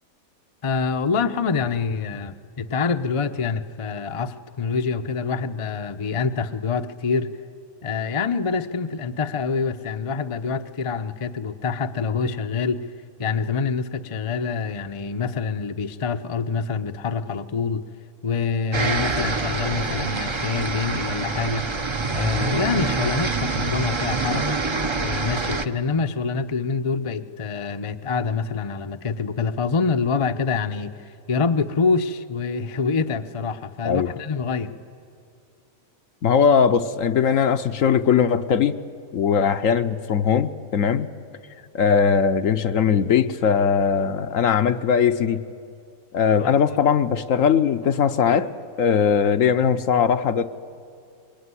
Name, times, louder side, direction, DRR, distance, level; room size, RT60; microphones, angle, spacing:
voice 1, 0.6-7.3 7.8-12.9 13.2-17.8 18.2-21.6 22.1-24.6 25.0-34.7 46.4-46.5, left 5 dB, 30° left, 0.6 m, -26 dB
sound 1, 18.7-25.7, right 3 dB, 25° right, 0.7 m, -26 dB
voice 2, 36.2-38.8 39.1-41.1 41.7-45.4 46.1-48.5 48.8-50.5, left 7 dB, 65° left, 1.1 m, -20 dB
24.0 x 22.0 x 9.7 m
omnidirectional pair, 1.5 m